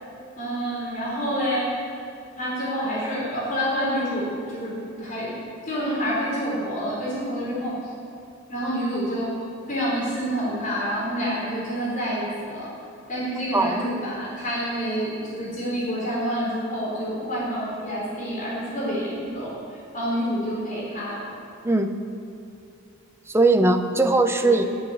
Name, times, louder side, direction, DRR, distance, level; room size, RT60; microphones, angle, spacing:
voice 1, 0.4-1.7 2.4-5.3 5.6-7.7 8.5-9.3 9.7-12.7 13.1-21.2 24.4-24.7, equal, 40° left, -6 dB, 4.3 m, -28 dB
voice 2, 13.5-13.8 21.6-21.9 23.3-24.6, right 2 dB, 15° right, 6 dB, 0.8 m, -19 dB
13.5 x 7.4 x 9.4 m, 2.5 s
head